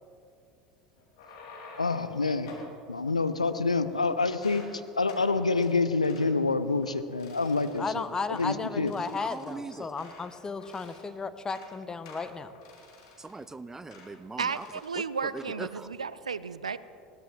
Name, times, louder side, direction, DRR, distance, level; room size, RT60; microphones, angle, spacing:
sound 1, 1.0-2.1 2.5-2.7 3.4-4.0 4.3-4.7 5.0-5.3 5.6-5.7 6.0-6.3 6.7-6.9 7.2-7.9 8.3-8.5 8.9-10.3 10.6-11.1 11.4-11.7 12.0-13.5 13.9-14.1 14.4-14.9 15.2-15.6, left 3 dB, 60° left, 3.3 m, -50 dB
voice 1, 1.8-2.5 2.9-8.0 8.3-8.9, left 3 dB, 85° left, 11 dB, 0.6 m, -27 dB
voice 2, 7.8-12.5, left 4 dB, 20° left, 12 dB, 0.8 m, -34 dB
voice 3, 9.2-10.0 13.2-14.6 15.2-15.9, right 3 dB, 15° right, 14 dB, 0.6 m, -41 dB
voice 4, 14.4-16.8, right 5 dB, 80° right, 17 dB, 0.4 m, -33 dB
20.0 x 16.5 x 3.2 m, 2.6 s
figure-of-eight pair, 75°, 3 cm